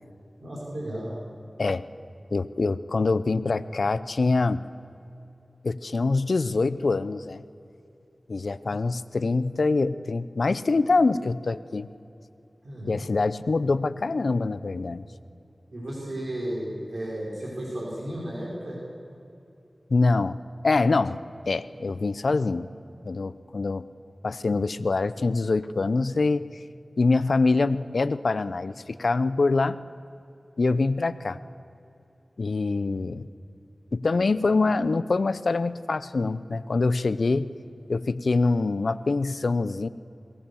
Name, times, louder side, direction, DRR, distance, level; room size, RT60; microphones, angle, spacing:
voice 1, 0.4-1.1 12.6-13.1 15.7-18.8 32.6-33.0, right 1 dB, 70° right, -4 dB, 5.3 m, -34 dB
voice 2, 2.3-4.7 5.6-7.4 8.3-11.9 12.9-15.1 19.9-22.7 23.0-23.9 24.2-26.5 27.0-29.8 30.6-31.4 32.4-33.3 33.9-37.5 37.9-39.9, left 3 dB, 75° left, 15 dB, 0.6 m, -25 dB
23.0 x 18.0 x 7.1 m, 2.8 s
cardioid pair, 40°, 0 cm